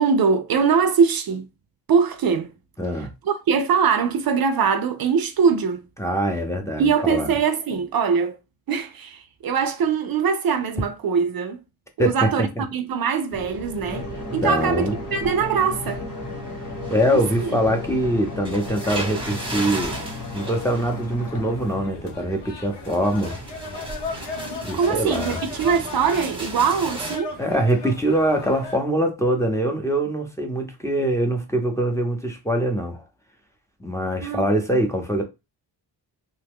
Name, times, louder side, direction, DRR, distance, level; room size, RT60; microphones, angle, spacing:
voice 1, 0.0-1.4 1.9-2.5 3.2-5.8 6.8-8.4 8.7-11.6 12.0-14.1 14.3-16.0 17.1-17.5 24.7-27.3 34.2-34.4 34.7-34.8, right 6 dB, 55° right, 0.5 m, -22 dB
voice 2, 2.8-3.1 6.0-7.3 12.0-12.6 14.4-14.9 16.9-20.0 20.3-23.4 24.6-25.4 27.4-33.0 33.8-35.2, right 1 dB, 5° left, 0.7 m, -23 dB
sound 1, 13.3-27.2, right 2 dB, 10° right, 1.0 m, -35 dB
sound 2, 13.9-21.9, left 4 dB, 45° left, 1.0 m, -35 dB
sound 3, 19.8-28.8, left 3 dB, 75° left, 0.8 m, -37 dB
3.0 x 2.2 x 3.5 m
cardioid pair, 100°, 42 cm